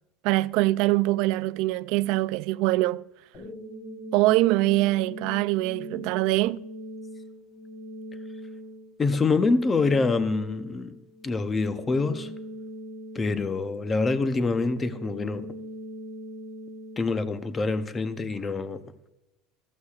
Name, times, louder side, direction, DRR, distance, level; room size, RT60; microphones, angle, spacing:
voice 1, 0.2-3.0 4.1-6.7, right 18 dB, 60° right, 0.3 m, -23 dB
sound 1, 3.3-18.4, equal, 40° left, 4.8 m, -41 dB
voice 2, 9.0-11.0 11.2-12.3 13.1-15.5 17.0-18.8, left 3 dB, 15° left, 0.6 m, -25 dB
15.0 x 14.5 x 2.4 m
cardioid pair, 165°, 0 cm